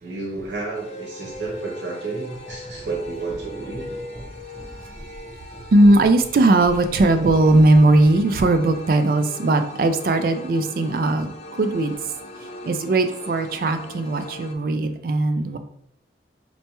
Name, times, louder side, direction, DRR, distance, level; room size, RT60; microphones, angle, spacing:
voice 1, 0.0-4.0, right 3 dB, 85° right, -2 dB, 0.9 m, -31 dB
sound 1, 0.7-14.5, left 1 dB, 35° left, 0.3 m, -40 dB
sound 2, 2.3-8.4, equal, ahead, 1.1 m, -41 dB
voice 2, 4.8-5.2 5.7-11.9 12.4-15.6, right 2 dB, 50° right, 8 dB, 0.3 m, -19 dB
4.2 x 2.2 x 2.9 m, 0.71 s
head